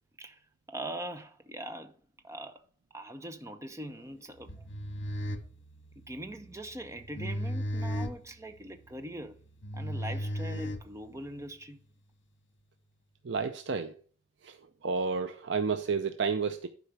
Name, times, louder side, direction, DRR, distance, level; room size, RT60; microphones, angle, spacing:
voice 1, 0.7-2.0 2.2-2.6 2.9-4.7 5.1-5.3 6.0-9.4 9.7-11.8, right 1 dB, 15° right, 0.8 m, -42 dB
sound 1, 4.4-11.4, equal, 70° left, 1.3 m, -36 dB
voice 2, 13.2-13.9 14.4-14.6 14.8-16.7, right 5 dB, 70° right, 0.6 m, -30 dB
11.5 x 5.1 x 4.6 m
head